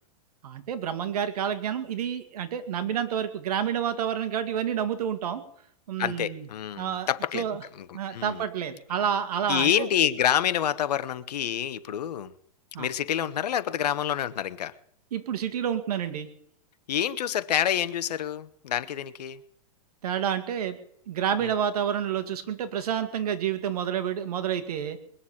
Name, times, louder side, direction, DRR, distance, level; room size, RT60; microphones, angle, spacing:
voice 1, 0.4-5.4 5.9-6.5 6.8-7.1 7.3-7.6 7.9-9.9 12.7-12.9 15.1-16.3 20.0-20.8 21.1-25.0, right 9 dB, 70° right, 2.1 m, -29 dB
voice 2, 6.0-7.5 7.7-8.4 9.5-12.3 12.8-14.7 16.9-19.4 21.4-21.5, left 10 dB, 80° left, 1.2 m, -27 dB
21.0 x 7.2 x 8.6 m
hypercardioid pair, 155°, 20 cm